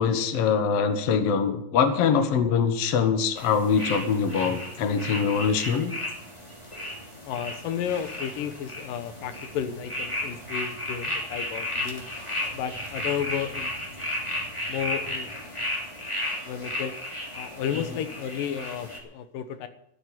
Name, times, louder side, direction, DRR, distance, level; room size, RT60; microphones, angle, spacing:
voice 1, 0.0-5.9, left 6 dB, 55° left, 8 dB, 2.0 m, -23 dB
sound 1, 3.3-19.0, left 1 dB, 10° left, 2.7 m, -34 dB
voice 2, 7.3-12.1 12.5-13.7 14.7-15.3 16.5-16.9 17.3-19.7, left 8 dB, 85° left, 10 dB, 2.7 m, -32 dB
13.5 x 8.1 x 9.2 m, 0.77 s
omnidirectional pair, 3.8 m